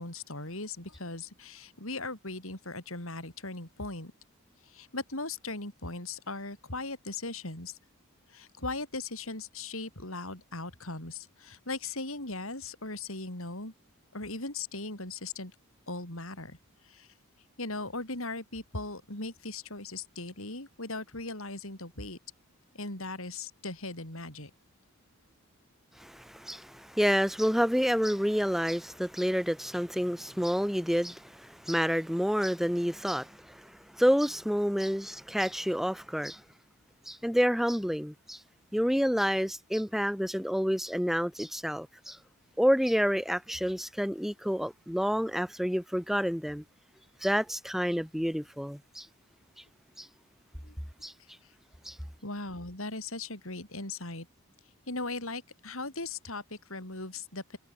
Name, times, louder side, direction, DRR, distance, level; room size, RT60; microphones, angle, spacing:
voice 1, 0.0-4.1 4.6-7.8 8.3-13.7 14.1-15.5 15.9-16.6 16.8-17.1 17.6-22.2 22.7-24.5 50.6-50.8 52.2-54.3 54.9-57.6, left 2 dB, 70° left, 7.1 m, -38 dB
voice 2, 26.0-36.4 37.1-38.4 38.7-42.2 42.6-46.6 47.2-49.1 50.0-50.1 51.0-51.1 51.9-52.0, equal, ahead, 1.9 m, -29 dB
head